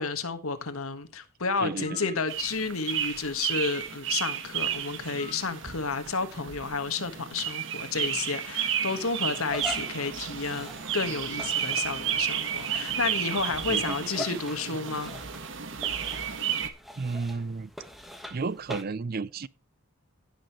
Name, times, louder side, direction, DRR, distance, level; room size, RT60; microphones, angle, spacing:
voice 1, 0.0-15.1, left 4 dB, 80° left, 1.5 m, -31 dB
voice 2, 1.6-2.1 13.7-14.4 17.0-17.7 18.3-19.5, right 4 dB, 45° right, 0.5 m, -33 dB
sound 1, 1.8-2.2 5.2-5.6, left 3 dB, 30° left, 1.7 m, -47 dB
sound 2, 2.3-16.7, right 9 dB, 60° right, 1.3 m, -32 dB
sound 3, 9.4-18.8, left 1 dB, ahead, 1.3 m, -44 dB
16.5 x 6.4 x 3.1 m
head